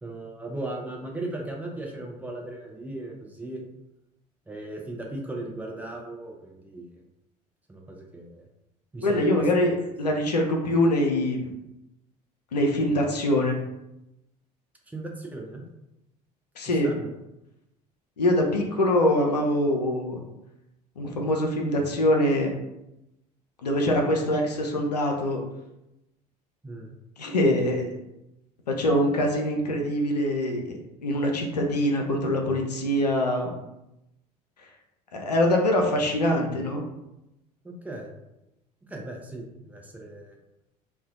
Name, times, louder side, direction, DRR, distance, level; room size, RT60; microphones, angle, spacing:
voice 1, 0.0-3.6 4.5-7.0 7.7-8.5 8.9-9.7 14.9-15.6 16.6-17.1 26.6-26.9 37.6-38.1 38.9-40.4, right 2 dB, 10° right, 0 dB, 0.4 m, -37 dB
voice 2, 9.0-11.5 12.5-13.6 16.6-16.9 18.2-20.2 21.0-22.5 23.6-25.4 27.2-27.9 28.7-33.5 35.1-36.8, left 1 dB, 85° left, 1 dB, 0.4 m, -24 dB
2.3 x 2.1 x 2.5 m, 0.90 s
figure-of-eight pair, 65°, 20 cm